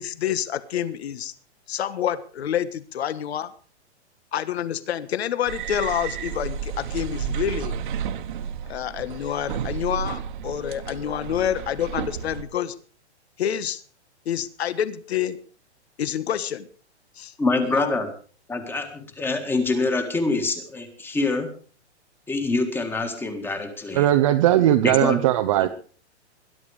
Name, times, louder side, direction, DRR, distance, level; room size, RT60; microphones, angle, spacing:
voice 1, 0.0-1.3 1.7-3.5 4.3-7.8 8.7-12.7 13.4-13.8 14.2-15.4 16.0-16.7 17.1-17.3 17.6-17.9, left 10 dB, 65° left, 15 dB, 1.5 m, -28 dB
sound 1, 5.5-12.4, right 8 dB, 45° right, 1.5 m, -32 dB
voice 2, 17.4-18.1 18.5-21.5 22.3-24.1 24.8-25.2, left 3 dB, 5° left, 7 dB, 1.7 m, -25 dB
voice 3, 23.9-25.7, right 13 dB, 30° right, 6 dB, 0.8 m, -18 dB
21.5 x 11.0 x 4.9 m, 0.41 s
hypercardioid pair, 165°, 34 cm